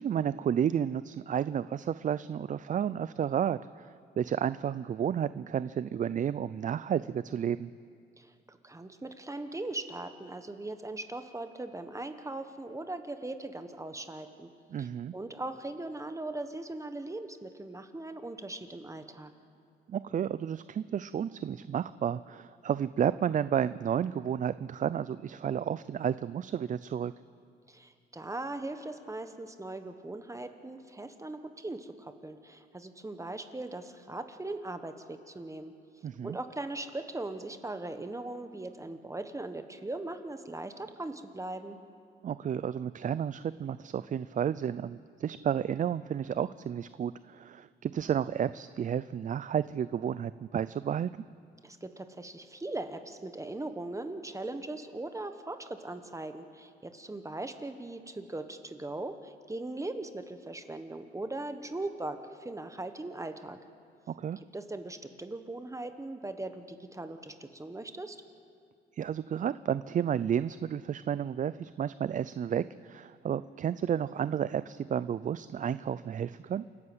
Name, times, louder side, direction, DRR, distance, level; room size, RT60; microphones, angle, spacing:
voice 1, 0.0-7.7 14.7-15.1 19.9-27.1 36.0-36.4 42.2-51.1 64.2-64.4 69.0-76.6, right 9 dB, 40° right, 15 dB, 0.4 m, -31 dB
voice 2, 8.2-14.5 14.8-14.9 15.1-19.3 27.7-35.7 36.2-41.8 51.6-63.6 64.5-68.2, right 2 dB, 15° right, 8 dB, 1.3 m, -39 dB
28.0 x 11.5 x 7.9 m, 2.3 s
cardioid pair, 90°, 20 cm